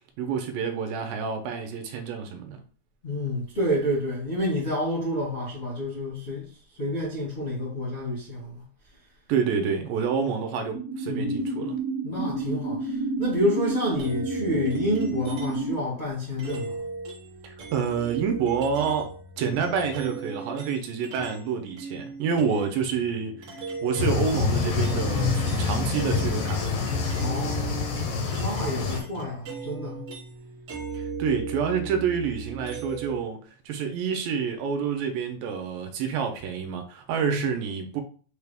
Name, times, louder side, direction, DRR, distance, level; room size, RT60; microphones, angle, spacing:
voice 1, 0.2-2.6 9.3-11.8 17.4-19.1 19.4-23.5 23.8-26.8 30.9-38.0, right 6 dB, 80° right, 2.3 m, -28 dB
voice 2, 3.0-6.5 6.8-8.6 11.1-11.3 12.0-16.8 27.1-27.9 28.4-30.0 37.2-37.5, left 1 dB, 55° left, 0.7 m, -29 dB
sound 1, 10.7-15.7, right 2 dB, 15° right, 0.5 m, -30 dB
sound 2, 14.0-15.7 16.4-21.5 21.8-33.2, right 4 dB, 60° right, 1.4 m, -38 dB
sound 3, 24.0-29.0, left 4 dB, 80° left, 1.3 m, -26 dB
6.4 x 2.3 x 3.4 m
omnidirectional pair, 4.2 m